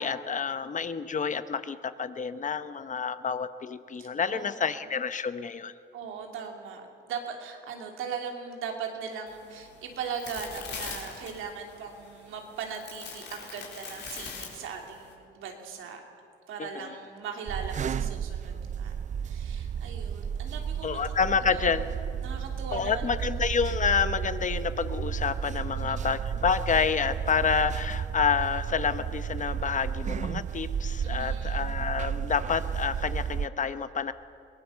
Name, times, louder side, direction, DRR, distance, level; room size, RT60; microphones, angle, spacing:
voice 1, 0.0-5.7 16.6-16.9 20.8-21.9 22.7-34.1, left 6 dB, 40° left, 12 dB, 1.0 m, -29 dB
voice 2, 4.0-4.7 5.9-16.0 16.5-18.9 19.2-21.8 22.2-23.3 25.7-26.2 31.0-31.7, right 6 dB, 85° right, 3 dB, 2.9 m, -39 dB
sound 1, 9.3-15.1, left 5 dB, 60° left, 4.5 m, -42 dB
sound 2, 17.5-33.5, right 8 dB, 40° right, 0.5 m, -33 dB
22.5 x 18.5 x 7.0 m, 2.4 s
cardioid pair, 90°, 20 cm